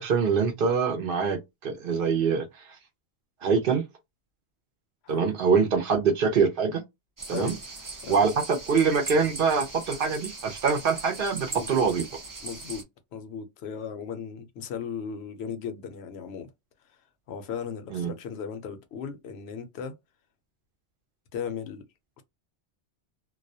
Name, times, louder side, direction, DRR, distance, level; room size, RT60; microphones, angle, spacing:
voice 1, 0.0-2.5 3.4-3.8 5.1-6.8 7.3-7.5 8.1-12.0 17.9-18.1, right 5 dB, 60° right, 0.7 m, -24 dB
voice 2, 5.0-5.3 7.3-7.6 8.0-8.2 11.5-11.9 12.4-12.9 13.1-16.5 17.3-19.9 21.3-21.8 22.2-22.3, left 7 dB, 75° left, 0.8 m, -36 dB
sound 1, 7.2-12.8, right 3 dB, 35° right, 0.3 m, -40 dB
2.3 x 2.1 x 2.6 m
omnidirectional pair, 1.1 m